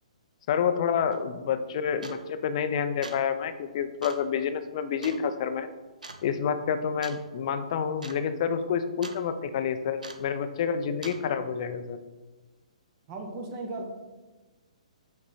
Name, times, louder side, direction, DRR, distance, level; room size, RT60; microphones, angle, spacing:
voice 1, 0.5-5.7 6.2-12.0, left 7 dB, 45° left, 10 dB, 0.5 m, -28 dB
sound 1, 1.1-1.2 2.0-2.4 2.8-3.3 4.0-4.3 5.0-5.2 6.0-6.3 7.0-7.3 7.6-7.7 7.9-8.2 8.5-9.2 10.0-10.4 11.0-11.2, right 3 dB, 85° right, 0.6 m, -42 dB
voice 2, 13.1-13.9, right 2 dB, 35° right, 2 dB, 1.2 m, -36 dB
5.4 x 4.5 x 4.1 m, 1.2 s
figure-of-eight pair, 125°, 4 cm